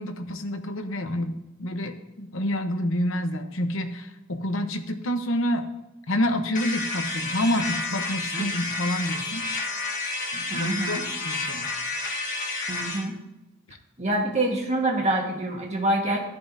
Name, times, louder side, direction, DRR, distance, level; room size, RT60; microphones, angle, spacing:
voice 1, 0.0-1.3 1.6-5.7 6.1-9.4 10.3-11.0 11.2-11.7 13.7-13.8, left 1 dB, 65° left, 7 dB, 1.0 m, -28 dB
sound 1, 6.5-13.0, left 3 dB, 40° left, 1.5 m, -30 dB
voice 2, 10.5-11.1 12.7-13.2 14.0-16.2, right 1 dB, 30° right, 0 dB, 1.5 m, -26 dB
13.5 x 10.5 x 2.7 m, 1.0 s
head